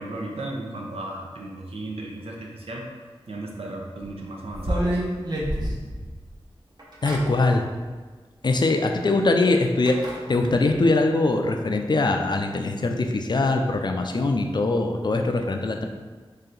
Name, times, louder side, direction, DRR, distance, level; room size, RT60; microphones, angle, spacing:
voice 1, 0.0-2.9 3.3-5.0 15.3-15.5, right 1 dB, 85° right, -1 dB, 0.6 m, -35 dB
sound 1, 4.5-6.3 6.8-7.2 8.5-8.6 9.9-10.2, equal, 45° right, 0.9 m, -27 dB
voice 2, 7.0-7.7 8.4-10.0 10.3-15.9, left 2 dB, 50° left, 4 dB, 0.4 m, -22 dB
3.3 x 2.8 x 3.8 m, 1.4 s
wide cardioid pair, 60°, 10 cm